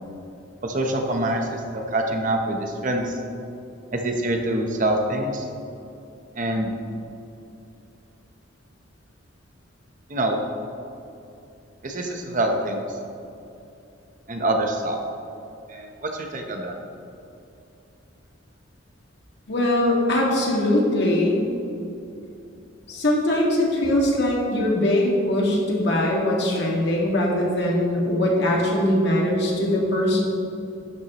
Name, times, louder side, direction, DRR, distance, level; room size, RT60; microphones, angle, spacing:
voice 1, 0.6-3.2 3.9-5.5 6.4-6.7 10.1-10.4 11.8-12.8 14.3-15.0 15.7-16.7, right 1 dB, 40° right, 3 dB, 0.9 m, -25 dB
voice 2, 19.5-21.4 22.9-30.2, left 1 dB, 55° left, -3 dB, 2.0 m, -21 dB
11.5 x 9.6 x 3.0 m, 2.7 s
head